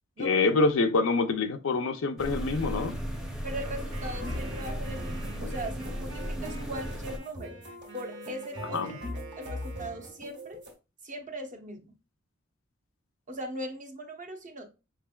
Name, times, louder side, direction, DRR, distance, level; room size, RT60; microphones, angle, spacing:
voice 1, 0.2-3.0 8.7-8.9, left 3 dB, 85° left, 0.5 m, -26 dB
sound 1, 2.2-7.2, equal, 5° right, 0.6 m, -35 dB
voice 2, 3.4-7.6 7.9-9.0 9.4-10.6 11.0-11.9 13.3-14.7, right 1 dB, 40° right, 0.8 m, -39 dB
Wind instrument woodwind instrument, 3.5-10.2, right 4 dB, 90° right, 1.2 m, -48 dB
sound 2, 3.9-10.7, equal, 60° right, 1.7 m, -41 dB
4.9 x 3.3 x 2.2 m
head